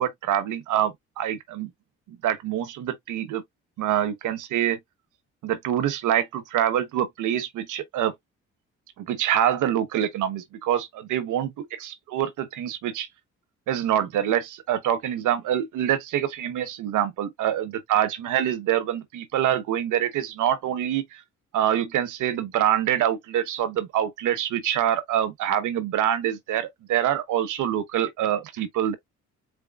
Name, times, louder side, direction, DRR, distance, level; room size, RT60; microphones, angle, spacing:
voice 1, 0.0-1.7 2.1-3.4 3.8-4.8 5.4-8.1 9.0-13.1 13.7-21.2 21.5-29.0, right 10 dB, 80° right, 1.1 m, -25 dB
4.4 x 3.4 x 2.3 m
cardioid pair, 90°, 30 cm